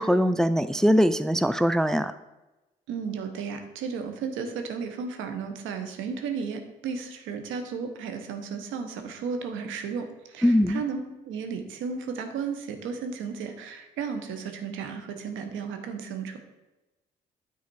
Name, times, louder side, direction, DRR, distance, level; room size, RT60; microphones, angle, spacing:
voice 1, 0.0-2.1 10.4-10.8, equal, ahead, 12 dB, 0.3 m, -22 dB
voice 2, 2.9-16.4, right 5 dB, 70° right, 6 dB, 1.0 m, -34 dB
9.3 x 4.0 x 4.6 m, 1.0 s
hypercardioid pair, 45°, 21 cm